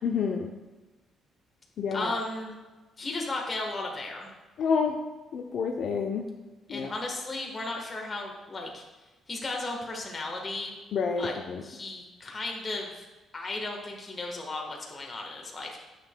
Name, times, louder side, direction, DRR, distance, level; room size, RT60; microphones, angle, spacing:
voice 1, 0.0-0.5 1.8-2.1 4.6-4.9 5.3-6.2 6.7-6.9 10.9-11.6, left 6 dB, 65° left, 1 dB, 0.6 m, -28 dB
voice 2, 1.9-2.5 3.0-4.3 6.7-8.8 9.3-10.7 11.2-11.3 11.6-13.1 13.3-15.8, left 2 dB, 30° left, 0 dB, 1.3 m, -35 dB
9.6 x 6.9 x 2.2 m, 1.2 s
cardioid pair, 75°, 0 cm